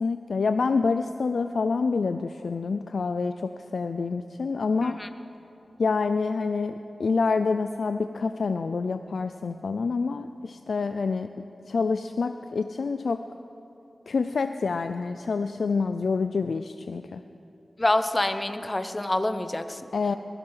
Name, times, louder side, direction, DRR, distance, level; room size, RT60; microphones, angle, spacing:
voice 1, 0.0-5.0 5.8-6.7 7.0-11.3 11.7-13.2 14.1-17.2 19.9-20.2, left 4 dB, 80° left, 9 dB, 0.4 m, -27 dB
voice 2, 17.8-19.8, left 1 dB, 30° left, 10 dB, 0.9 m, -26 dB
21.0 x 11.5 x 5.7 m, 2.8 s
cardioid pair, 45°, 0 cm